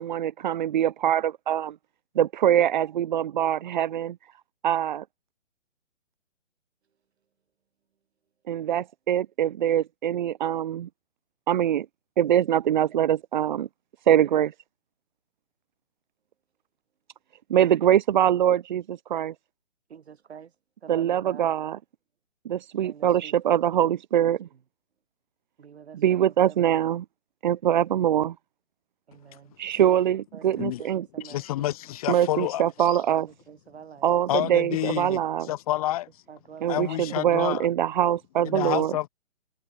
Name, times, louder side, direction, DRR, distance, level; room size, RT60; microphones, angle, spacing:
voice 1, 0.0-1.7 2.1-4.2 4.6-5.0 8.5-10.9 11.5-11.9 12.2-13.7 14.1-14.5 17.5-19.3 20.9-21.8 22.4-24.5 25.9-27.0 27.4-28.3 29.6-31.1 32.1-33.3 34.0-35.5 36.6-39.0, right 10 dB, 40° right, 1.3 m, -23 dB
voice 2, 19.9-20.5 20.8-21.5 22.8-23.3 25.6-26.8 29.1-29.5 30.3-31.7 32.5-32.6 33.0-33.2 33.5-34.1 36.3-37.0, right 7 dB, 55° right, 8.0 m, -46 dB
voice 3, 31.2-32.6 34.3-35.2 35.5-36.1 36.7-37.7 38.4-39.1, left 14 dB, 30° left, 2.1 m, -28 dB
hypercardioid pair, 155°, 38 cm